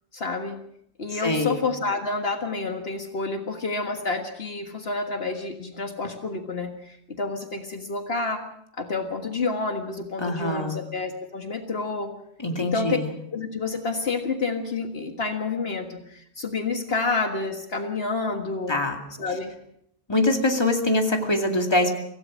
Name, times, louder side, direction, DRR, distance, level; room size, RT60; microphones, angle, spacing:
voice 1, 0.1-0.6 1.0-8.4 8.8-12.1 12.6-13.0 13.3-18.7 19.2-19.5, left 3 dB, 60° left, 5 dB, 1.9 m, -29 dB
voice 2, 1.1-1.6 10.2-10.8 12.4-13.1 18.7-19.0 20.1-21.9, left 1 dB, 25° left, 3 dB, 2.4 m, -24 dB
25.5 x 16.5 x 6.3 m, 0.72 s
omnidirectional pair, 1.2 m